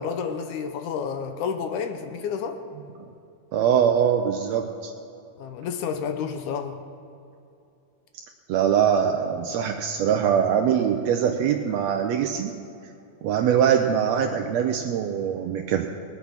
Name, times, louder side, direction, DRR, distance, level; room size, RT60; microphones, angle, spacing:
voice 1, 0.0-2.6 5.4-6.8, left 6 dB, 75° left, 7 dB, 2.1 m, -30 dB
voice 2, 3.5-4.9 8.5-12.6 13.2-15.9, right 8 dB, 75° right, 3 dB, 1.6 m, -22 dB
20.0 x 8.3 x 5.8 m, 2.6 s
omnidirectional pair, 3.8 m